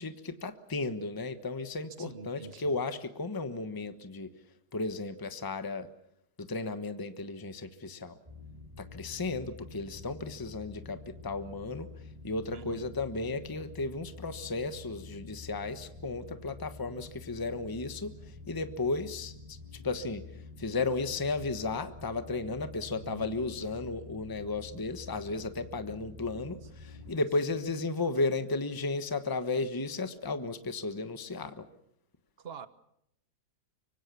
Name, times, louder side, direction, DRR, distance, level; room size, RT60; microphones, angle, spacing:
voice 1, 0.0-4.3 4.7-5.9 6.4-8.2 8.8-11.9 12.2-19.6 19.8-20.3 20.6-31.7, left 3 dB, 15° left, 9 dB, 1.1 m, -34 dB
voice 2, 2.0-2.8 12.5-13.0 23.0-23.4 26.9-27.2 32.4-32.7, right 5 dB, 40° right, 12 dB, 1.3 m, -47 dB
sound 1, 8.3-27.1, left 4 dB, 20° right, 5.9 m, -48 dB
25.0 x 24.5 x 7.0 m, 0.76 s
omnidirectional pair, 1.8 m